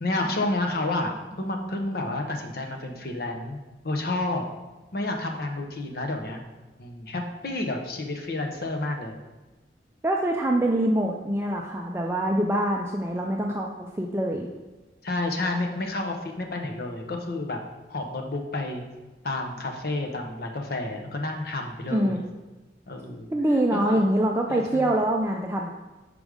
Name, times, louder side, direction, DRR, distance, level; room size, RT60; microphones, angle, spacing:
voice 1, 0.0-3.6 3.8-4.4 4.9-6.4 6.8-9.2 15.0-17.6 17.9-18.8 19.2-22.2 22.9-23.3 23.7-24.0 24.5-24.9, left 2 dB, 55° left, 3 dB, 0.8 m, -30 dB
voice 2, 10.0-14.5 21.9-22.2 23.3-25.7, right 1 dB, 15° right, 0 dB, 0.4 m, -24 dB
5.1 x 5.1 x 4.8 m, 1.2 s
head